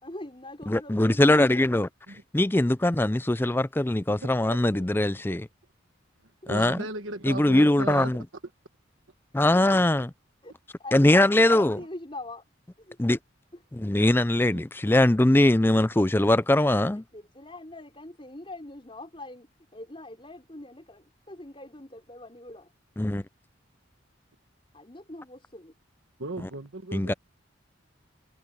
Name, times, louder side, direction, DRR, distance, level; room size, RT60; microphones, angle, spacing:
voice 1, 0.0-1.7 10.4-10.5 10.8-12.4 12.8-13.0 13.5-13.6 17.1-19.5 19.7-22.7 24.7-25.7, left 2 dB, 25° left, 4.8 m, -42 dB
voice 2, 0.7-1.9 2.3-5.5 6.5-6.8 7.3-8.1 9.3-10.1 10.9-11.8 13.0-13.2 13.7-17.0 23.0-23.2 26.9-27.1, left 1 dB, 10° left, 0.4 m, -21 dB
voice 3, 4.2-5.0 5.3-5.4 6.2-8.4 9.6-9.7 11.8-11.9 14.5-14.6 26.2-27.1, right 2 dB, 80° right, 1.4 m, -37 dB
head